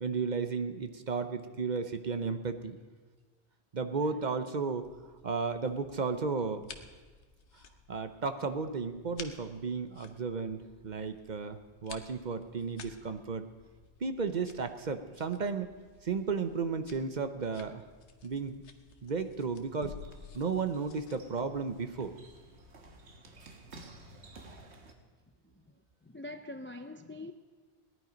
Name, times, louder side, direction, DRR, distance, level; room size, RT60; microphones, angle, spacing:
voice 1, 0.0-2.8 3.7-4.9 5.2-6.7 7.9-10.6 10.8-13.5 14.0-15.7 16.0-17.8 18.2-18.6 19.0-19.9 20.3-22.1, right 5 dB, 45° right, 0.8 m, -34 dB
sound 1, 4.8-24.5, left 5 dB, 90° left, 1.3 m, -54 dB
sound 2, 19.3-24.9, right 2 dB, 80° right, 1.6 m, -54 dB
voice 2, 26.0-27.3, left 2 dB, 20° left, 0.4 m, -44 dB
17.5 x 11.0 x 5.1 m
omnidirectional pair, 1.1 m